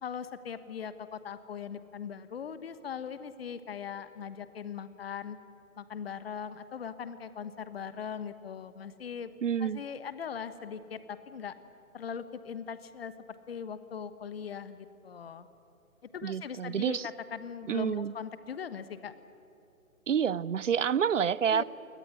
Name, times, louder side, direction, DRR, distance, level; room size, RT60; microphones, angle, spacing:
voice 1, 0.0-5.4 5.8-9.3 9.6-11.5 11.9-13.1 13.5-15.5 16.1-19.1 21.5-21.6, left 7 dB, 45° left, 13 dB, 1.3 m, -40 dB
voice 2, 9.4-9.8 16.2-17.1 17.7-18.1 20.1-21.6, right 8 dB, 60° right, 21 dB, 0.6 m, -28 dB
22.0 x 19.0 x 9.8 m, 2.6 s
figure-of-eight pair, 140°, 43 cm